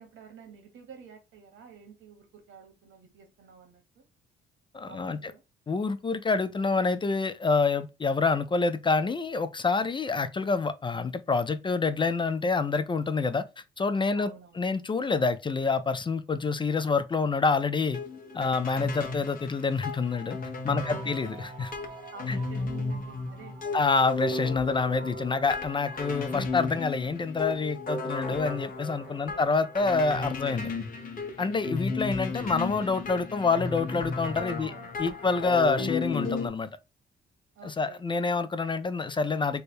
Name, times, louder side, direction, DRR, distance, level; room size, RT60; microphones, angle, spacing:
voice 1, 0.0-4.0 4.8-5.4 14.1-14.6 20.7-21.3 22.1-23.8 29.0-29.5 34.6-35.3 37.5-38.0, right 6 dB, 75° right, 1.3 m, -49 dB
voice 2, 4.7-5.2 5.7-13.4 13.8-14.3 14.6-18.0 18.3-20.4 20.6-21.7 22.3-22.4 23.7-30.7 31.4-34.7 35.0-36.7 37.6-39.6, left 4 dB, 25° left, 0.4 m, -27 dB
sound 1, 17.9-36.5, left 3 dB, 45° left, 0.9 m, -34 dB
sound 2, 20.6-27.5, right 4 dB, 60° right, 0.8 m, -49 dB
3.3 x 2.1 x 4.2 m
cardioid pair, 90°, 20 cm